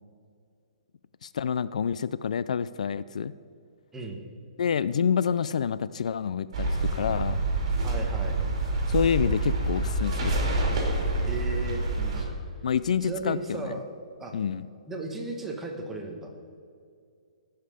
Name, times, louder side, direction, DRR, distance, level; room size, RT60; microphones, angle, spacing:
voice 1, 1.2-3.3 4.6-7.4 8.9-10.4 12.6-13.7 14.3-14.7, left 7 dB, 70° left, 16 dB, 0.3 m, -27 dB
voice 2, 3.9-4.2 7.8-8.4 11.3-12.4 13.0-13.9 14.2-14.3 14.9-16.3, right 3 dB, 5° right, 1 dB, 1.0 m, -36 dB
sound 1, 6.5-12.2, right 2 dB, 45° right, 2.8 m, -27 dB
16.0 x 5.7 x 5.0 m, 2.3 s
hypercardioid pair, 165°, 4 cm